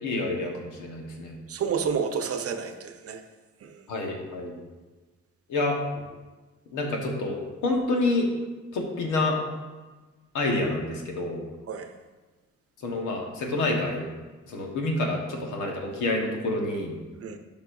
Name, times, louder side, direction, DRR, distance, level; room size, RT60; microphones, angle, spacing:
voice 1, 0.0-1.4 3.9-4.5 5.5-5.8 6.7-8.3 8.7-9.4 10.3-11.4 12.8-14.1 14.5-16.9, left 2 dB, 85° left, 1 dB, 1.4 m, -28 dB
voice 2, 1.5-3.2 3.6-3.8 11.7-11.9 17.2-17.4, right 6 dB, 50° right, 7 dB, 0.8 m, -30 dB
11.5 x 5.4 x 2.7 m, 1.2 s
cardioid pair, 90°, 30 cm